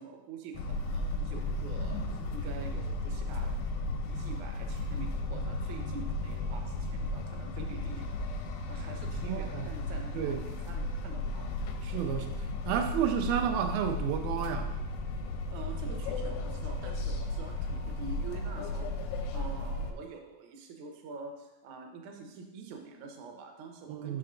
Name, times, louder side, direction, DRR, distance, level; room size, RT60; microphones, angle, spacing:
voice 1, 0.0-3.6 4.1-8.3 8.7-11.5 15.5-24.2, right 4 dB, 70° right, 2 dB, 2.0 m, -46 dB
sound 1, 0.5-19.9, left 2 dB, 85° left, 2.3 m, -35 dB
voice 2, 9.3-9.7 10.1-10.4 11.8-14.7 23.9-24.2, right 8 dB, 90° right, 5 dB, 2.5 m, -31 dB
6.8 x 5.8 x 3.8 m, 0.99 s
omnidirectional pair, 4.1 m